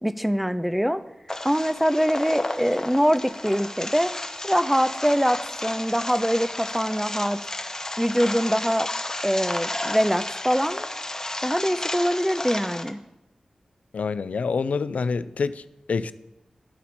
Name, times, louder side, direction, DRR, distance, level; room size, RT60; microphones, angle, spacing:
voice 1, 0.0-1.0 1.4-4.1 4.4-7.4 8.0-8.9 9.2-10.9 11.4-13.0, equal, 5° right, 0.5 m, -23 dB
sound 1, 1.3-12.9, left 1 dB, 25° left, 0.8 m, -32 dB
voice 2, 13.9-16.1, left 5 dB, 85° left, 0.3 m, -27 dB
12.5 x 4.1 x 4.3 m
wide cardioid pair, 60°, 2 cm